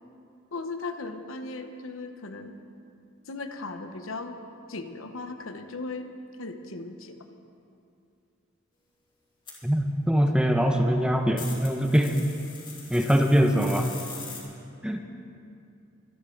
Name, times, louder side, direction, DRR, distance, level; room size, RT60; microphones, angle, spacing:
voice 1, 0.5-2.6 3.3-4.4 4.7-6.1 6.4-7.2, left 3 dB, 85° left, 7 dB, 1.0 m, -37 dB
sound 1, 9.5-9.6 11.4-14.4, left 4 dB, 25° left, 3.0 m, -42 dB
voice 2, 9.6-12.2 12.9-13.9 14.8-15.0, equal, 5° right, 4 dB, 0.7 m, -23 dB
25.0 x 10.0 x 3.9 m, 2.6 s
head